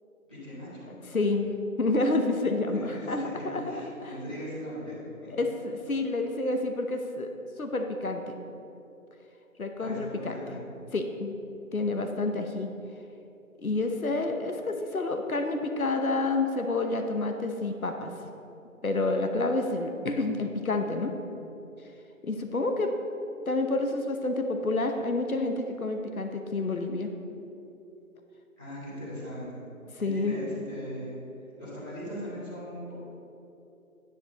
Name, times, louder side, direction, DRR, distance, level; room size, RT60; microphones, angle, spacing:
voice 1, 0.3-1.2 2.7-5.4 9.8-10.6 28.6-29.6 30.0-31.1 31.6-32.9, equal, 5° right, -19 dB, 1.5 m, -39 dB
voice 2, 1.1-1.5 1.8-4.1 5.3-7.3 7.6-8.2 9.6-10.6 10.9-11.4 11.7-12.7 13.6-18.1 18.8-21.1 22.2-22.9 23.5-27.1 29.9-30.4, left 2 dB, 75° left, 5 dB, 1.0 m, -29 dB
10.5 x 10.0 x 3.0 m, 2.8 s
figure-of-eight pair, 170°, 43 cm